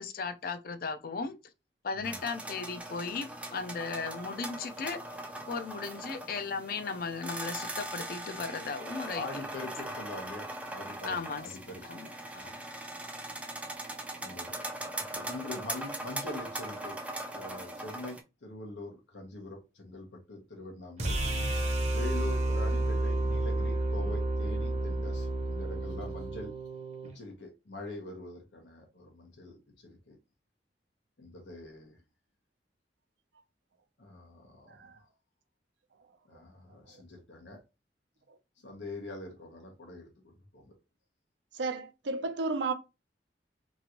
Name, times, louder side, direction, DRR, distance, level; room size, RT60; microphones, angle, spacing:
voice 1, 0.0-1.4 1.8-5.0 5.5-9.4 11.1-11.5 11.9-12.1 12.3-12.9, left 4 dB, 55° left, 0.4 m, -36 dB
sound 1, 2.0-18.2, right 1 dB, 10° right, 0.4 m, -40 dB
voice 2, 9.1-11.8 12.3-12.5 14.2-14.6 15.0-17.0 17.3-21.2 21.5-26.6 27.0-30.2 31.2-32.0 34.0-35.1 36.2-37.6 38.6-40.7, left 2 dB, 90° left, 1.1 m, -44 dB
sound 2, 21.0-27.1, right 2 dB, 40° right, 0.7 m, -30 dB
voice 3, 41.5-42.7, right 3 dB, 90° right, 0.5 m, -33 dB
3.0 x 2.5 x 2.9 m
head